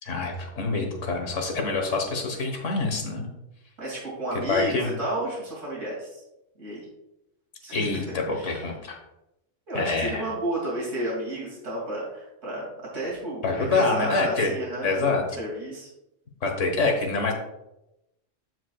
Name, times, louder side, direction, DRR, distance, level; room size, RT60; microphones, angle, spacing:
voice 1, 0.0-3.3 4.5-4.9 7.7-9.0 9.7-10.3 13.4-14.5 14.8-15.2 16.4-17.3, left 3 dB, 85° left, 3 dB, 1.7 m, -26 dB
voice 2, 3.8-6.2 6.6-6.8 7.6-8.0 8.3-8.6 9.7-15.1 15.4-15.9, right 1 dB, 90° right, -5 dB, 2.9 m, -32 dB
14.0 x 4.8 x 2.3 m, 0.89 s
omnidirectional pair, 1.2 m